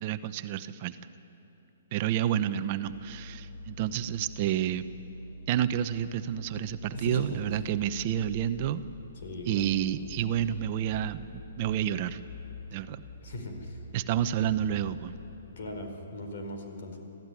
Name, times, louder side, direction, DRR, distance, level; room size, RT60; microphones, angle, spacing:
voice 1, 0.0-1.0 1.9-4.8 5.5-8.8 9.5-12.2 12.7-13.0 13.9-15.1, right 10 dB, 35° right, 10 dB, 0.8 m, -29 dB
sound 1, 2.9-16.1, left 1 dB, 40° left, 4.8 m, -45 dB
voice 2, 6.9-7.4 9.2-9.7 13.2-13.8 15.6-17.0, left 1 dB, 60° left, 4 dB, 5.0 m, -38 dB
26.0 x 15.0 x 9.8 m, 2.9 s
hypercardioid pair, 150°, 0 cm